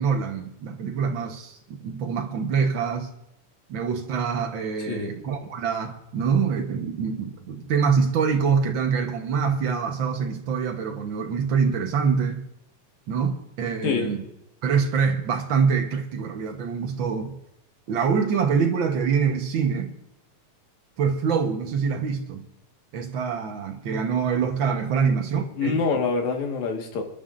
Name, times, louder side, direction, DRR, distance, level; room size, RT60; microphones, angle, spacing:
voice 1, 0.0-3.1 3.7-12.4 13.1-14.2 14.6-17.4 17.9-19.9 21.0-22.5 22.9-25.8, right 6 dB, 70° right, 1.1 m, -25 dB
voice 2, 4.8-5.1 13.8-14.2 25.0-25.1 25.6-27.0, left 5 dB, 65° left, 2.9 m, -26 dB
27.5 x 10.5 x 2.6 m
omnidirectional pair, 3.7 m